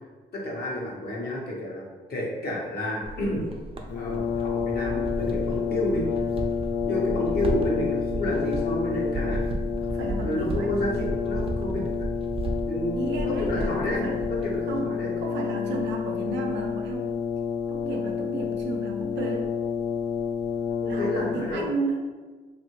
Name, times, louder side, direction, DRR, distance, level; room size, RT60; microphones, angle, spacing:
voice 1, 0.3-3.4 3.9-6.1 6.8-9.4 10.2-11.9 12.7-15.1 20.8-21.7, left 1 dB, 60° left, -3 dB, 1.0 m, -30 dB
sound 1, 3.0-14.6, right 2 dB, 30° right, 0.5 m, -34 dB
Brass instrument, 3.9-21.7, left 6 dB, 75° left, 0.4 m, -29 dB
voice 2, 9.8-10.8 13.0-14.2 14.7-17.1 17.7-19.5 20.8-22.1, right 2 dB, 85° right, 1 dB, 0.6 m, -33 dB
2.7 x 2.5 x 2.9 m, 1.3 s
supercardioid pair, 60°, 18 cm